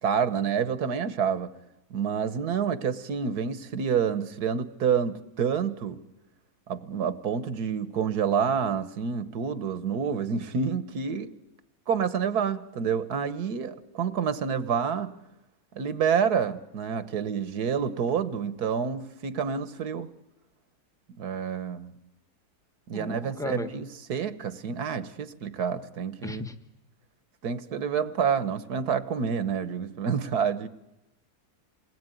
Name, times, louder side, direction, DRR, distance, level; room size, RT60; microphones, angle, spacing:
voice 1, 0.0-1.5 1.9-6.0 6.7-11.3 11.9-15.1 15.7-20.1 21.1-21.9 22.9-26.4 27.4-30.7, right 7 dB, 75° right, 13 dB, 1.7 m, -28 dB
voice 2, 22.9-23.7 26.2-26.5, left 2 dB, ahead, 8 dB, 1.1 m, -35 dB
28.0 x 20.5 x 9.2 m, 0.92 s
omnidirectional pair, 1.7 m